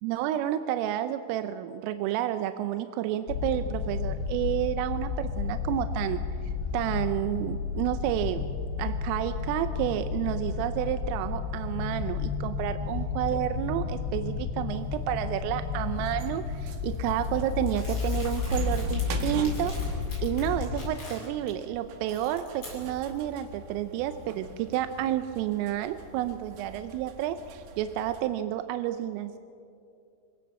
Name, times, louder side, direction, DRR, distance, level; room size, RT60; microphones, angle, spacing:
voice 1, 0.0-6.2 6.7-8.4 8.8-29.4, right 12 dB, 85° right, 10 dB, 3.3 m, -30 dB
sound 1, 3.3-20.9, left 6 dB, 80° left, 3.7 m, -32 dB
sound 2, 14.7-28.2, right 4 dB, 65° right, 2.5 m, -42 dB
Crumpling crinkling, 17.7-21.5 21.9-23.2, left 2 dB, 25° left, 8.5 m, -45 dB
27.0 x 17.5 x 7.6 m, 2.5 s
omnidirectional pair, 5.7 m